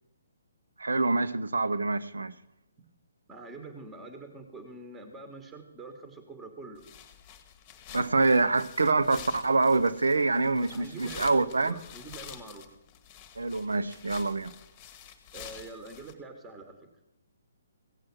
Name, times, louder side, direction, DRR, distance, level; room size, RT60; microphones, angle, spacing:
voice 1, 0.8-2.3 7.9-11.7 13.4-14.5, right 3 dB, 70° right, 0.7 m, -25 dB
voice 2, 3.3-6.8 10.5-12.7 15.3-17.1, right 3 dB, 10° right, 1.4 m, -45 dB
sound 1, 6.8-16.1, left 9 dB, 25° left, 1.2 m, -48 dB
16.0 x 7.5 x 6.1 m
figure-of-eight pair, 135°, 0 cm